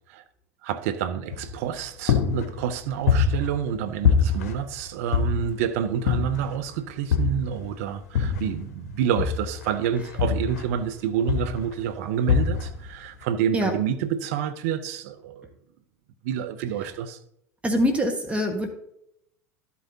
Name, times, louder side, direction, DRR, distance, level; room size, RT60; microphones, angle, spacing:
voice 1, 0.6-15.5 16.2-17.2, right 8 dB, 60° right, 0.8 m, -28 dB
sound 1, 1.3-1.8 2.1-3.8 4.0-5.7 6.1-6.6 7.1-8.7 9.2-10.9 11.3-11.7 12.3-12.9, left 6 dB, 65° left, 1.2 m, -24 dB
voice 2, 17.6-18.7, equal, 15° right, 1.4 m, -23 dB
12.5 x 8.4 x 2.8 m
figure-of-eight pair, 80°, 9 cm